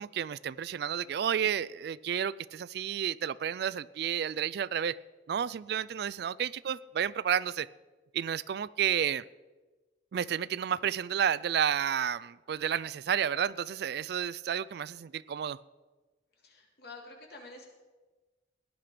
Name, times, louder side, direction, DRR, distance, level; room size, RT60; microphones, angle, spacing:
voice 1, 0.0-5.0 5.3-7.7 8.1-9.2 10.1-15.6, right 8 dB, 60° right, 20 dB, 0.3 m, -31 dB
voice 2, 16.4-17.7, left 3 dB, 60° left, 0 dB, 2.8 m, -48 dB
18.0 x 10.5 x 5.0 m, 1.3 s
head